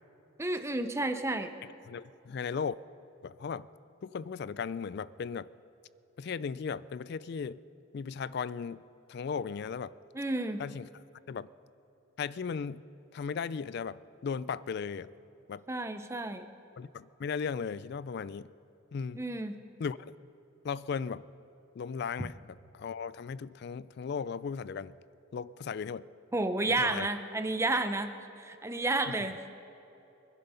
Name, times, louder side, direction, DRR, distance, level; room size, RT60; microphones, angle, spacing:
voice 1, 0.4-1.5 10.1-10.6 15.7-16.5 19.1-19.6 26.3-29.4, right 2 dB, 15° right, 8 dB, 0.6 m, -31 dB
voice 2, 1.9-2.7 3.2-3.7 4.0-5.5 6.2-7.6 7.9-8.8 9.1-9.9 10.6-10.9 11.3-11.5 12.2-12.8 13.1-15.1 15.5-15.6 16.8-18.5 18.9-19.2 19.8-20.2 20.6-21.3 21.8-24.9 25.3-26.1 26.7-27.1 29.1-29.3, left 6 dB, 50° left, 18 dB, 0.3 m, -36 dB
24.5 x 10.5 x 5.6 m, 3.0 s
head